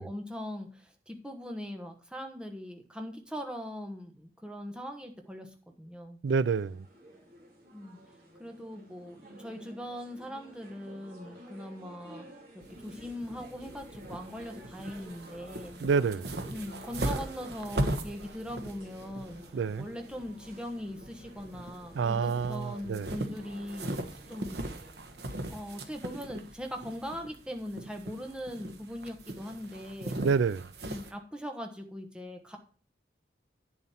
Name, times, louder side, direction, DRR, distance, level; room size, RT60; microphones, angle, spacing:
voice 1, 0.0-5.5 5.8-6.2 7.7-8.0 8.4-12.3 12.8-15.8 16.5-19.4 19.8-24.7 25.5-30.2 30.8-32.6, equal, 5° right, 1.2 m, -40 dB
voice 2, 6.2-6.9 15.8-16.3 19.5-19.9 21.9-23.1 30.2-30.7, right 5 dB, 85° right, 0.4 m, -28 dB
sound 1, 6.3-25.9, right 1 dB, 50° right, 3.1 m, -52 dB
sound 2, 12.6-31.1, right 1 dB, 65° right, 1.2 m, -39 dB
10.0 x 7.1 x 4.3 m
head